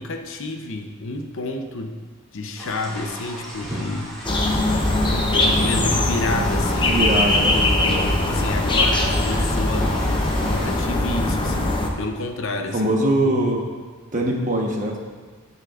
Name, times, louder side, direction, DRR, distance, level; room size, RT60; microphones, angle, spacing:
voice 1, 0.0-2.0 2.3-4.8 5.1-7.1 7.5-12.9 13.2-13.4, left 2 dB, 60° left, 5 dB, 0.7 m, -30 dB
sound 1, 2.6-10.7, equal, ahead, 2.6 m, -34 dB
sound 2, 4.2-11.9, left 2 dB, 20° left, 0.8 m, -21 dB
voice 2, 6.7-8.1 12.7-13.6 14.1-15.0, right 1 dB, 35° right, 0 dB, 1.2 m, -22 dB
16.0 x 6.7 x 2.5 m, 1.5 s
head